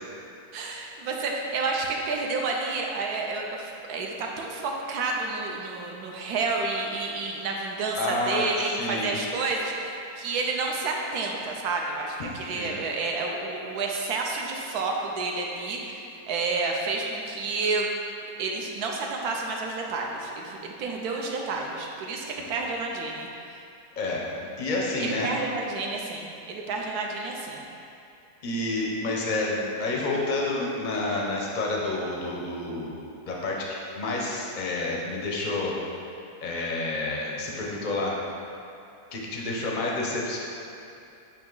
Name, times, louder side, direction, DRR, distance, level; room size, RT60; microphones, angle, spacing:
voice 1, 0.5-17.9 18.4-23.3 25.0-27.6, right 3 dB, 70° right, 0 dB, 1.1 m, -30 dB
voice 2, 7.9-8.4 8.8-9.2 12.5-12.8 24.0-25.3 28.4-33.0 33.3-35.8 36.4-38.2 39.1-40.4, left 2 dB, 50° left, -3 dB, 0.5 m, -29 dB
8.6 x 2.9 x 3.8 m, 2.7 s
omnidirectional pair, 1.8 m